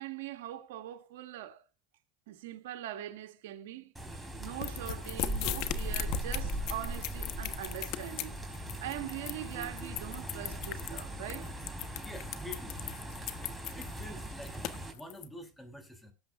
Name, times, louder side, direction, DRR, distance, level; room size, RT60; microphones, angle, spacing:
voice 1, 0.0-1.6 2.3-8.3 8.6-11.5, right 13 dB, 80° right, 1.7 m, -42 dB
sound 1, 4.0-14.9, right 1 dB, 10° right, 3.8 m, -39 dB
sound 2, 4.6-15.3, left 14 dB, 60° left, 1.2 m, -38 dB
voice 2, 11.8-12.8 13.7-14.6 14.9-16.1, left 1 dB, 10° left, 3.3 m, -47 dB
18.0 x 7.7 x 2.6 m
supercardioid pair, 105°, 0 cm